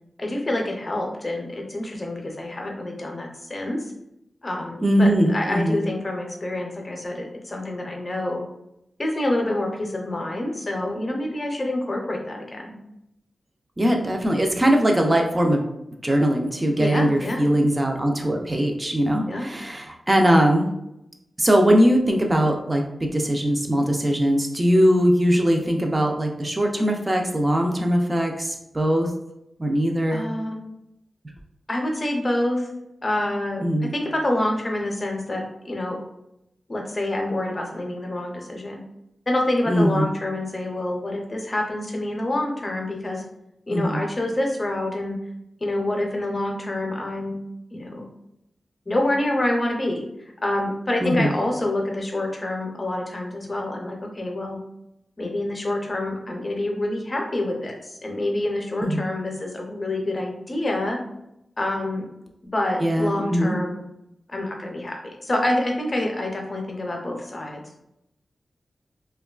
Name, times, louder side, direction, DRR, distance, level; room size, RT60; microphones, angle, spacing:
voice 1, 0.2-3.8 4.4-8.4 9.0-12.8 16.8-17.4 19.3-19.5 30.1-30.7 31.7-32.7 33.0-33.6 33.9-36.0 36.7-38.8 39.3-43.2 43.7-45.2 45.6-47.4 47.7-48.0 48.9-50.1 50.4-54.6 55.2-61.0 61.6-62.0 62.5-63.8 64.3-67.6, left 1 dB, 35° left, 1 dB, 0.6 m, -27 dB
voice 2, 4.8-5.8 13.8-15.7 16.0-20.7 21.4-29.1 29.6-30.3 33.6-33.9 39.7-40.1 43.7-44.0 51.0-51.3 58.8-59.0 62.8-63.6, equal, 25° right, 2 dB, 0.4 m, -21 dB
2.9 x 2.2 x 2.3 m, 0.84 s
wide cardioid pair, 85°, 0 cm